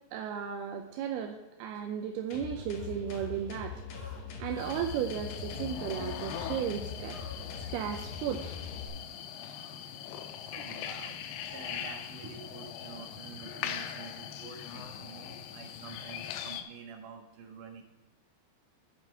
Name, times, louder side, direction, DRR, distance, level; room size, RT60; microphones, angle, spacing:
voice 1, 0.1-3.8 4.4-7.2 7.6-8.6, right 8 dB, 80° right, 4 dB, 2.6 m, -35 dB
sound 1, 1.7-1.8 2.3-2.5 2.8-4.7 5.1-5.6 5.9-6.0 6.6-8.7 9.1-10.0 10.4-12.6 13.1-13.4, left 2 dB, 40° left, 3.4 m, -56 dB
sound 2, 2.3-8.9, left 6 dB, 70° left, 2.7 m, -42 dB
sound 3, 4.6-16.6, left 9 dB, 90° left, 2.7 m, -41 dB
voice 2, 10.5-17.8, right 5 dB, 60° right, 1 dB, 2.7 m, -48 dB
10.5 x 7.2 x 4.5 m, 1.2 s
omnidirectional pair, 4.6 m